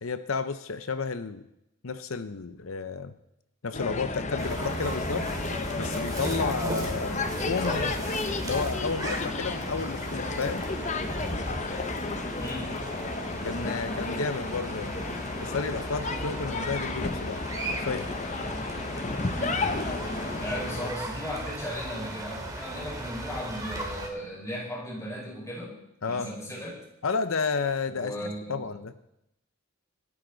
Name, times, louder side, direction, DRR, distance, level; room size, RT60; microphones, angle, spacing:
voice 1, 0.0-1.4 1.8-3.1 3.6-5.3 5.8-8.0 8.4-10.6 13.4-15.0 15.4-17.4 17.7-18.1 26.0-26.3 27.0-28.9, left 4 dB, 85° left, 11 dB, 0.8 m, -32 dB
sound 1, 3.7-20.9, left 3 dB, 35° left, 0.8 m, -33 dB
sound 2, 4.4-24.1, right 1 dB, 15° right, 2.4 m, -37 dB
voice 2, 12.4-12.7 19.1-19.8 20.4-25.8 26.0-26.8 27.9-28.7, equal, 15° left, -3 dB, 5.1 m, -36 dB
25.5 x 9.6 x 4.0 m, 0.83 s
head